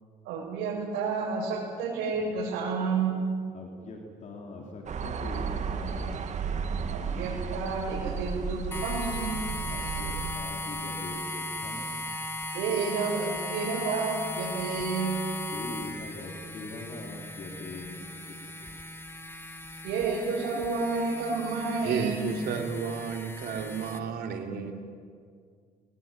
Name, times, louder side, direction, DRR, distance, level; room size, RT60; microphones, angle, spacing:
voice 1, 0.2-3.2 6.9-9.4 12.5-15.2 19.8-22.2, right 4 dB, 90° right, -5 dB, 6.4 m, -30 dB
voice 2, 3.5-6.4 9.6-12.2 15.5-18.7, left 2 dB, 45° left, 0 dB, 3.9 m, -42 dB
sound 1, 4.9-10.3, right 6 dB, 45° right, 1.9 m, -33 dB
sound 2, 8.7-24.0, left 1 dB, 15° left, 1.8 m, -37 dB
voice 3, 21.8-24.7, right 6 dB, 70° right, 3 dB, 3.7 m, -32 dB
22.5 x 20.0 x 9.4 m, 2.1 s
cardioid pair, 110°, 17 cm